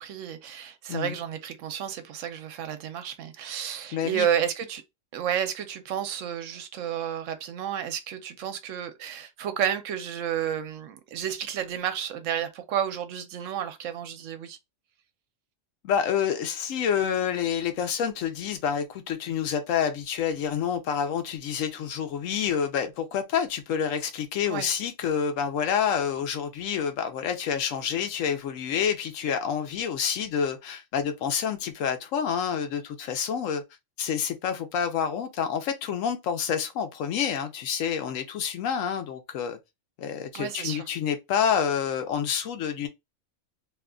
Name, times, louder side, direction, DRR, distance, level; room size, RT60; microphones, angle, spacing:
voice 1, 0.0-4.8 5.1-14.6 24.5-24.7 40.3-40.9, right 9 dB, 75° right, 0.9 m, -31 dB
voice 2, 3.9-4.3 15.8-33.6 34.0-39.6 40.0-42.9, left 8 dB, 85° left, 1.0 m, -28 dB
2.7 x 2.2 x 3.6 m
omnidirectional pair, 1.3 m